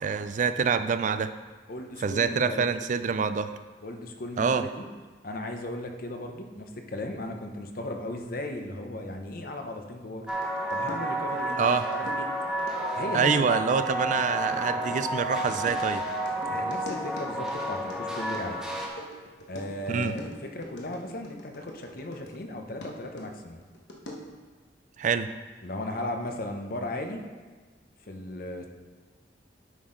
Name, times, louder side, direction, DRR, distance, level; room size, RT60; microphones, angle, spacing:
voice 1, 0.0-1.3 2.0-3.5 4.4-4.7 11.6-11.8 13.1-16.0 19.9-20.1 25.0-25.3, right 5 dB, 45° right, 11 dB, 0.3 m, -26 dB
voice 2, 1.7-2.7 3.8-4.8 5.2-10.3 10.7-11.6 11.9-12.3 12.9-13.3 16.1-18.6 19.5-23.6 25.6-27.2 28.0-28.7, left 1 dB, 55° left, 4 dB, 0.8 m, -36 dB
sound 1, 10.3-22.5 22.8-24.4, equal, 75° left, 1.2 m, -45 dB
sound 2, 10.3-18.9, right 1 dB, 5° right, 1.1 m, -31 dB
9.4 x 6.1 x 3.8 m, 1.4 s
head